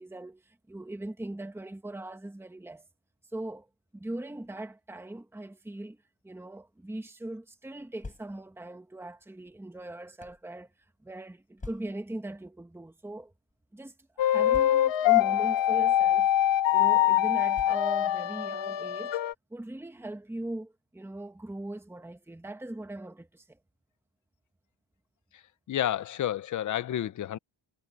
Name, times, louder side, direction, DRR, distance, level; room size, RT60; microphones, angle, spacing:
voice 1, 0.0-2.9 3.3-3.7 3.9-6.0 6.2-10.7 11.0-13.3 13.7-16.3 16.7-19.2 19.5-23.6, right 1 dB, 5° right, 1.6 m, -40 dB
sound 1, 7.8-8.7 9.5-10.5 11.6-12.2 13.1-13.2 13.5-13.6 14.5-15.2 16.0-16.3 17.5-18.2, left 3 dB, 15° left, 4.2 m, -46 dB
sound 2, 14.2-19.3, left 12 dB, 65° left, 1.4 m, -24 dB
voice 2, 25.7-27.4, left 11 dB, 40° left, 0.7 m, -30 dB
cardioid pair, 145°, 47 cm